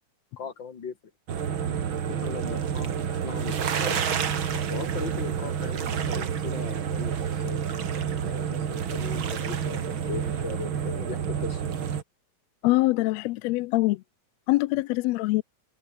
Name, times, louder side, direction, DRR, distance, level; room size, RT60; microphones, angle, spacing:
voice 1, 0.4-1.0 2.1-4.0 4.7-11.7, left 6 dB, 40° left, 3.0 m, -39 dB
sound 1, 1.3-12.0, right 8 dB, 45° right, 2.2 m, -29 dB
voice 2, 12.6-14.0 14.5-15.4, left 19 dB, 80° left, 1.6 m, -24 dB
omnidirectional pair, 3.4 m